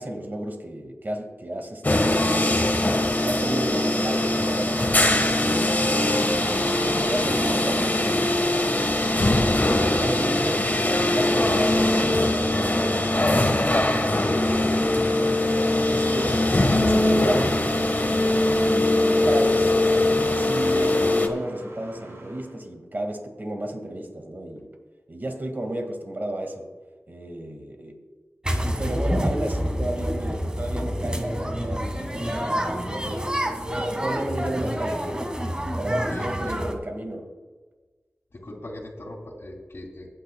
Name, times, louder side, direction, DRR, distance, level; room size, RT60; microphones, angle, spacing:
voice 1, 0.0-2.4 3.2-4.9 5.4-8.4 8.8-13.5 15.7-17.7 18.1-24.7 25.1-26.7 27.1-28.0 28.8-33.4 33.7-35.3 35.8-37.3, right 1 dB, 45° right, 3 dB, 1.9 m, -33 dB
sound 1, 1.8-21.3, left 1 dB, 40° left, 1.4 m, -21 dB
sound 2, 3.7-22.6, right 1 dB, 80° right, 3.1 m, -43 dB
sound 3, 28.4-36.8, equal, 20° right, 1.7 m, -28 dB
voice 2, 36.0-36.6 38.3-40.1, left 1 dB, 55° left, -5 dB, 2.5 m, -40 dB
23.5 x 9.5 x 2.3 m, 1.3 s
wide cardioid pair, 55°, 5 cm